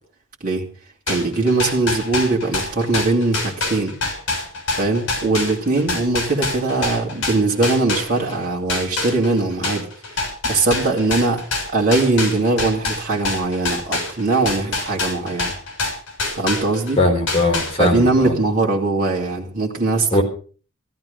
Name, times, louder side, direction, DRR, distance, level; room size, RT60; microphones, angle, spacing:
sound 1, 1.1-8.4 8.7-16.9 17.3-18.1, left 3 dB, 60° left, 6.5 m, -25 dB
voice 1, 1.1-3.9 4.8-9.9 10.2-11.4 11.7-15.5 16.4-17.0 17.8-20.2, right 3 dB, 40° right, -3 dB, 3.0 m, -20 dB
voice 2, 17.0-18.3 20.1-20.2, left 2 dB, 25° left, 2 dB, 3.8 m, -19 dB
15.0 x 13.5 x 5.4 m, 0.40 s
head